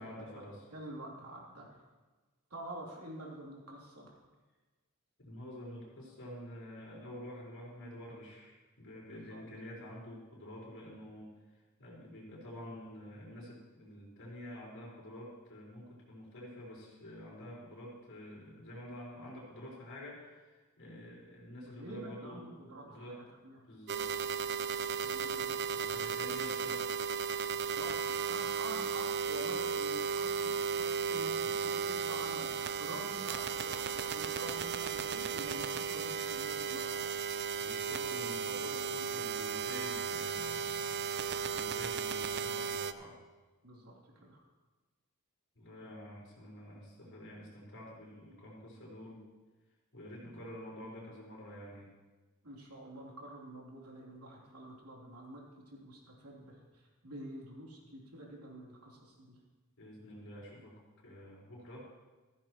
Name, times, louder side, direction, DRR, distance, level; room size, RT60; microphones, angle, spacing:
voice 1, 0.0-0.7 5.2-11.3 11.8-23.2 23.7-24.3 25.7-27.0 31.4-31.6 37.6-43.2 45.5-49.2 49.9-51.9 59.8-61.9, left 1 dB, 60° left, -5 dB, 4.9 m, -48 dB
voice 2, 0.7-1.8 2.5-4.1 9.1-9.4 21.6-23.1 23.4-23.6 25.0-25.5 27.5-37.4 43.6-43.9 44.2-44.4 50.2-50.3 52.4-59.3, right 1 dB, 90° right, -2 dB, 3.2 m, -47 dB
sound 1, 23.9-42.9, right 6 dB, 50° right, 0.5 m, -35 dB
15.0 x 14.5 x 3.1 m, 1.3 s
head